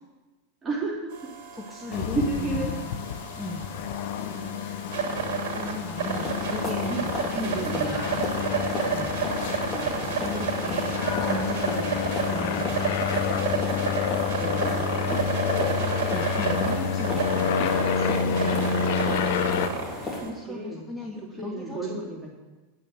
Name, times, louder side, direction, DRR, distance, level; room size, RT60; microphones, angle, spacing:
voice 1, 0.6-1.3 1.9-2.7 4.2-5.1 6.8-7.0 7.3-8.0 9.5-10.0 14.3-14.7 20.2-20.8 21.4-22.3, right 3 dB, 20° right, -1 dB, 3.2 m, -33 dB
sound 1, 1.1-20.3, right 5 dB, 55° right, 2.9 m, -31 dB
voice 2, 1.5-3.0 3.4-3.7 5.6-7.2 7.5-7.9 8.9-9.2 10.1-13.0 15.9-18.6 20.5-21.9, left 1 dB, 5° left, -1 dB, 1.3 m, -37 dB
sound 2, 1.9-19.7, left 7 dB, 60° left, 0.7 m, -29 dB
sound 3, 6.0-20.2, left 2 dB, 25° left, 3.4 m, -35 dB
9.3 x 8.8 x 7.4 m, 1.2 s
figure-of-eight pair, 90°, 0 cm